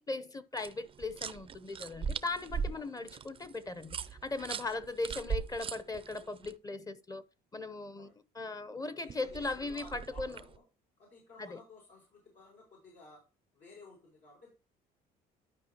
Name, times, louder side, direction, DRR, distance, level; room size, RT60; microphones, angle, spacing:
voice 1, 0.0-7.2 7.5-8.1 8.3-10.4 11.4-11.6, left 3 dB, 20° left, 0.7 m, -38 dB
sound 1, 0.6-6.5 9.1-10.6, right 6 dB, 30° right, 0.4 m, -40 dB
voice 2, 4.4-4.7 8.0-8.1 8.8-10.6 11.0-13.2 13.5-14.5, left 3 dB, 80° left, 5.0 m, -55 dB
12.0 x 5.0 x 2.9 m
cardioid pair, 110°, 17 cm